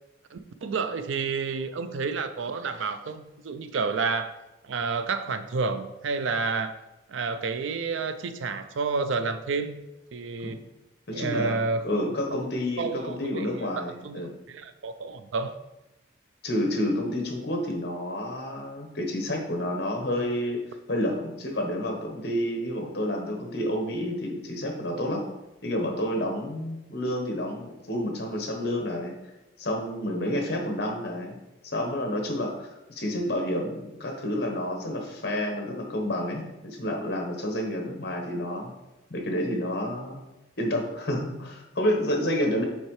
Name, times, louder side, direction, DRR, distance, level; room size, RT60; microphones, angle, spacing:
voice 1, 0.3-4.3 4.6-6.8 7.1-9.8 10.1-10.6 11.1-12.1 12.8-13.5 13.8-15.5, right 4 dB, 80° right, 11 dB, 0.4 m, -30 dB
voice 2, 11.1-11.6 11.8-14.3 16.4-20.6 20.9-25.2 25.6-29.1 29.6-31.4 31.6-38.7 39.1-40.2 40.6-42.7, left 1 dB, 55° left, 2 dB, 1.1 m, -29 dB
7.1 x 4.5 x 3.2 m, 0.99 s
head